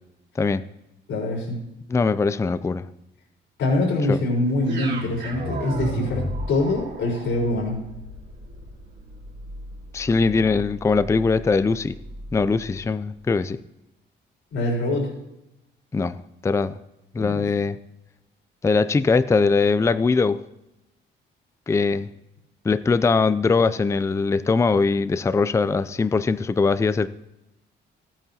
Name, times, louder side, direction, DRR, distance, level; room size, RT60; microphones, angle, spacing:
voice 1, 1.1-1.6 3.6-7.8 14.5-15.1 17.2-17.4, left 2 dB, 80° left, -2 dB, 4.1 m, -24 dB
voice 2, 1.9-2.9 4.1-4.2 9.9-11.9 12.3-13.6 15.9-16.2 16.4-16.8 17.1-17.8 18.6-20.4 21.7-22.1 22.6-27.1, left 4 dB, 15° left, 14 dB, 0.4 m, -21 dB
sound 1, 4.6-12.8, right 1 dB, 70° right, 3.4 m, -34 dB
14.0 x 9.0 x 2.8 m, 0.88 s
cardioid pair, 90°, 20 cm